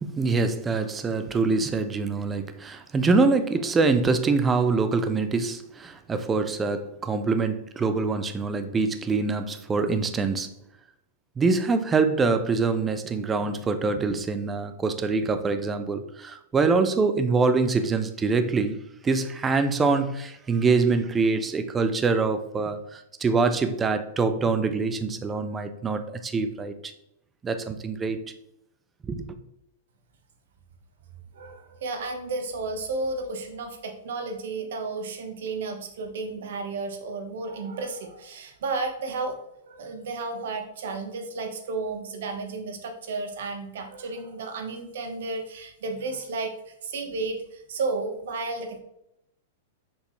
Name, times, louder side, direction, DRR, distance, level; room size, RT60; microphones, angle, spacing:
voice 1, 0.0-10.6 11.4-26.9 27.4-28.2 29.0-29.3, right 4 dB, 10° right, 9 dB, 0.4 m, -25 dB
voice 2, 31.3-39.4 39.6-48.8, right 3 dB, 65° right, 5 dB, 1.2 m, -33 dB
6.6 x 5.2 x 3.2 m, 0.82 s
supercardioid pair, 175°, 0 cm